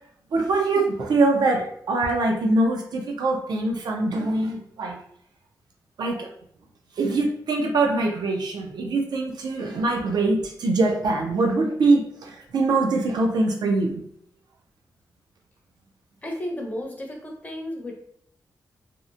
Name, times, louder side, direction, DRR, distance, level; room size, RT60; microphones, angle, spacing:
voice 1, 0.3-5.0 6.0-6.3 7.0-14.0, right 2 dB, 75° right, 2 dB, 0.5 m, -23 dB
voice 2, 16.2-17.9, left 1 dB, 20° left, 0 dB, 0.5 m, -33 dB
2.8 x 2.1 x 2.4 m, 0.66 s
wide cardioid pair, 145°, 7 cm